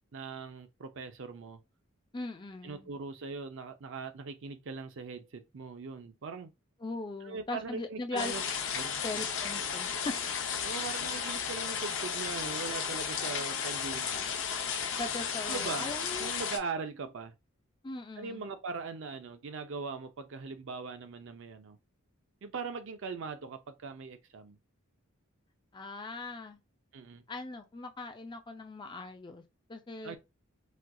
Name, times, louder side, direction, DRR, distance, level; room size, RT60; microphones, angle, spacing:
voice 1, 0.1-1.6 2.6-6.5 7.2-8.4 8.7-9.0 10.0-10.1 10.6-14.3 15.4-15.9 16.2-17.3 18.2-21.8 22.4-24.6 26.9-27.2 30.0-30.2, right 4 dB, 60° right, 0.5 m, -40 dB
voice 2, 2.1-2.9 6.8-8.3 9.0-10.2 15.0-16.3 17.8-18.4 25.7-26.6 27.3-29.4 29.7-30.2, left 2 dB, 20° left, 0.4 m, -39 dB
sound 1, 8.2-16.6, left 7 dB, 60° left, 0.6 m, -34 dB
4.2 x 2.4 x 2.3 m
head